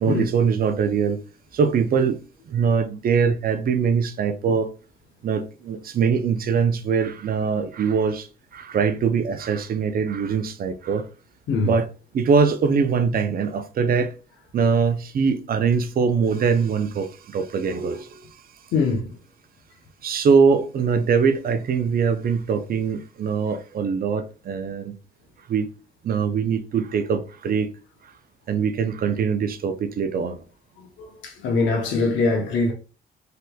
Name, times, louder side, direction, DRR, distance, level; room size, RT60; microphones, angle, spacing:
voice 1, 0.0-1.2 1.5-2.2 2.5-4.7 5.2-11.1 11.6-11.9 12.1-14.1 14.5-18.3 20.0-25.0 25.5-25.7 26.0-27.7 28.5-30.4, right 6 dB, 50° right, 0.4 m, -22 dB
voice 2, 18.7-19.1 31.0-32.7, left 3 dB, 75° left, 0.7 m, -22 dB
3.3 x 2.9 x 2.2 m
cardioid pair, 90°, 20 cm